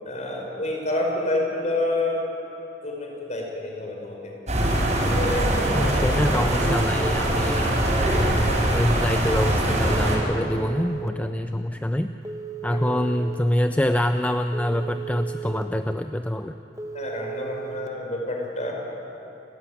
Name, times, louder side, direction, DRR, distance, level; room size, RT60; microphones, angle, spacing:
voice 1, 0.0-2.3 2.8-4.4 4.7-6.6 12.8-13.0 16.9-18.7, left 1 dB, 40° left, -1 dB, 5.6 m, -29 dB
sound 1, 4.5-10.2, right 1 dB, 40° right, 6.0 m, -22 dB
voice 2, 5.7-7.8 8.7-12.1 12.6-16.6, left 1 dB, 10° left, 8 dB, 0.5 m, -25 dB
Telephone, 10.0-11.1 12.2-13.3 14.5-15.6 16.8-17.9, right 8 dB, 15° right, 1.3 m, -35 dB
30.0 x 14.5 x 10.0 m, 2.9 s
head